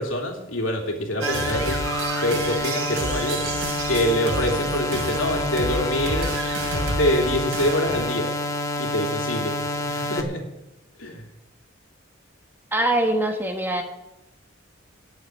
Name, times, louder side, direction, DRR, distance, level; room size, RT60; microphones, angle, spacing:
voice 1, 0.0-1.8 2.2-3.4 3.9-6.3 6.7-8.3 8.8-9.5 9.8-10.4 11.0-11.2, equal, 75° left, 1 dB, 3.0 m, -25 dB
sound 1, 1.2-10.2, left 2 dB, 15° left, 1.0 m, -28 dB
sound 2, 1.2-8.2, right 2 dB, 90° right, 2.9 m, -30 dB
voice 2, 12.7-13.8, right 1 dB, 10° right, 3 dB, 1.3 m, -23 dB
11.5 x 7.9 x 9.2 m, 0.97 s
head